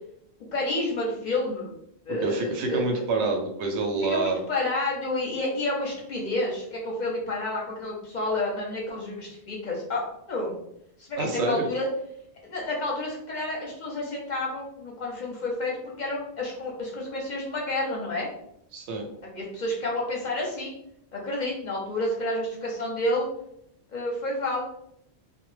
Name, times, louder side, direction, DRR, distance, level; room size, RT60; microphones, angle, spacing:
voice 1, 0.5-1.7 2.1-3.0 4.1-10.6 11.0-11.9 12.4-18.3 19.2-20.8 21.1-23.3 23.9-24.6, left 2 dB, 55° left, -2 dB, 0.6 m, -30 dB
voice 2, 2.1-4.4 11.2-11.7 18.7-19.1, right 3 dB, 85° right, 3 dB, 0.9 m, -27 dB
2.1 x 2.1 x 3.0 m, 0.75 s
omnidirectional pair, 1.1 m